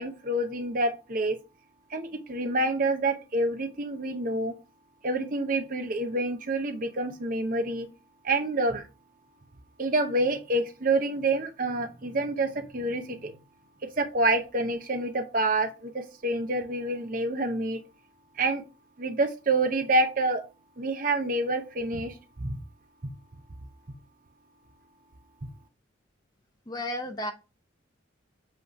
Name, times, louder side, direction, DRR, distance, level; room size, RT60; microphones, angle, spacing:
voice 1, 0.0-1.4 1.9-4.5 5.0-7.9 8.2-8.9 9.8-13.3 14.0-17.8 18.4-18.6 19.0-20.4 20.8-22.6, right 2 dB, 45° right, 6 dB, 0.8 m, -27 dB
voice 2, 26.7-27.3, left 1 dB, 20° left, 5 dB, 0.7 m, -32 dB
7.6 x 3.1 x 5.3 m, 0.30 s
head